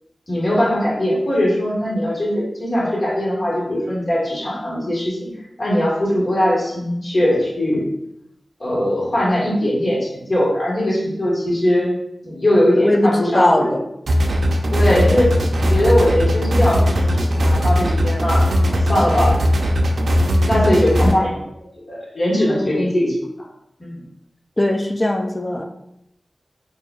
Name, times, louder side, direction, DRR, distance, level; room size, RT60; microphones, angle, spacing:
voice 1, 0.3-5.3 5.6-7.8 8.6-11.9 12.2-13.7 14.7-15.4 15.7-19.3 20.1-21.4 21.8-23.1 23.8-24.0, left 1 dB, 45° left, -5 dB, 1.3 m, -20 dB
voice 2, 12.8-13.8 14.9-15.1 20.5-20.8 22.6-22.9 24.6-25.6, left 1 dB, 25° left, 4 dB, 0.3 m, -20 dB
sound 1, 14.1-21.1, equal, 90° right, 0.3 m, -18 dB
4.5 x 2.4 x 2.3 m, 0.80 s
wide cardioid pair, 95°, 0 cm